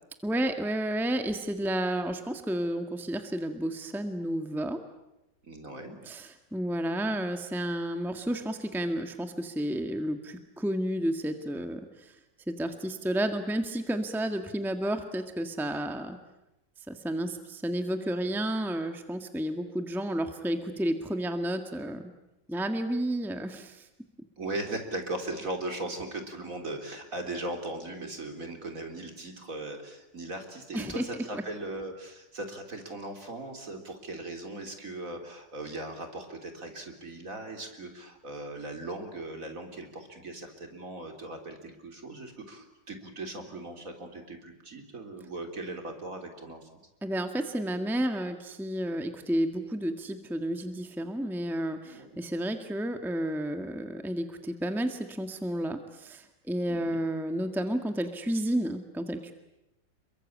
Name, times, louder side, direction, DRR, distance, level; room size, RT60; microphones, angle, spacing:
voice 1, 0.2-4.8 6.0-12.1 12.5-16.2 16.9-22.1 22.5-23.8 30.7-31.0 31.3-31.4 47.0-59.3, right 1 dB, ahead, 6 dB, 1.6 m, -31 dB
voice 2, 5.4-6.0 24.4-46.7 51.8-52.2 56.7-57.0, right 2 dB, 50° right, 4 dB, 3.9 m, -38 dB
28.5 x 23.0 x 8.7 m, 0.92 s
omnidirectional pair, 1.9 m